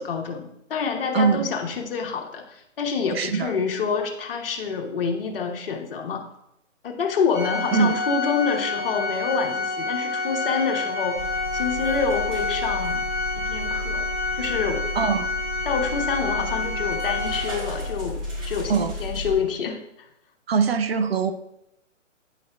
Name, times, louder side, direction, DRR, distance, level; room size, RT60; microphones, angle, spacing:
voice 1, 0.0-6.2 6.8-11.2 11.5-13.0 13.4-14.0 14.4-14.8 15.7-19.8, left 5 dB, 45° left, 3 dB, 1.0 m, -27 dB
voice 2, 1.1-1.5 3.1-3.5 7.7-8.0 15.0-15.3 18.7-18.9 20.5-21.3, right 6 dB, 50° right, 10 dB, 0.5 m, -22 dB
Organ, 7.3-17.9, left 3 dB, 10° right, 1.0 m, -28 dB
sound 1, 11.2-19.4, left 1 dB, 25° right, 2.2 m, -33 dB
8.9 x 5.3 x 2.2 m, 0.83 s
hypercardioid pair, 140°, 38 cm